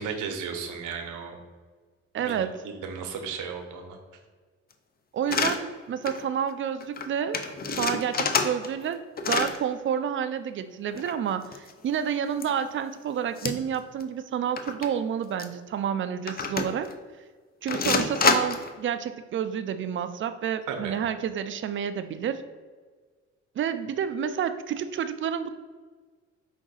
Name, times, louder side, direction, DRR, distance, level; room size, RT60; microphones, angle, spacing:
voice 1, 0.0-1.4 2.2-4.0 20.7-21.0, right 6 dB, 85° right, 5 dB, 0.7 m, -35 dB
voice 2, 2.1-2.6 5.1-7.4 7.7-9.0 9.3-16.9 17.6-22.4 23.6-25.5, right 8 dB, 40° right, 11 dB, 0.4 m, -29 dB
sound 1, 5.3-5.6 6.1-6.2 6.5-6.6 6.8-7.1 7.3-8.9 9.2-9.6 10.9-12.0 12.4-12.5 13.4-13.8 14.0-14.1 14.6-14.9 15.4-15.5 16.3-16.9 17.7-18.7, left 5 dB, 30° left, 0.4 m, -27 dB
4.9 x 2.6 x 3.9 m, 1.5 s
cardioid pair, 90°, 30 cm